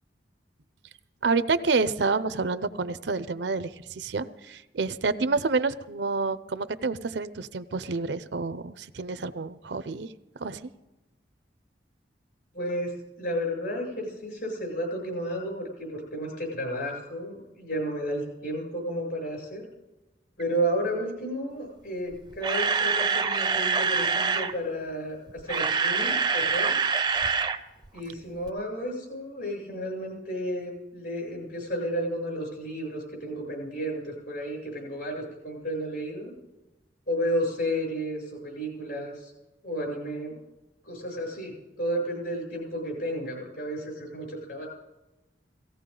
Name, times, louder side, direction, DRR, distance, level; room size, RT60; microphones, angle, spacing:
voice 1, 1.2-10.1 10.4-10.7, right 4 dB, 70° right, 14 dB, 0.6 m, -28 dB
voice 2, 12.5-12.9 13.2-19.6 20.4-26.8 27.9-36.3 37.1-39.3 39.6-40.4 40.8-44.7, equal, 55° left, 0 dB, 7.4 m, -32 dB
Camera, 22.1-24.5 25.3-27.6 27.8-28.0 28.5-28.6, right 5 dB, 25° right, 0.5 m, -25 dB
18.0 x 16.0 x 3.8 m, 1.0 s
head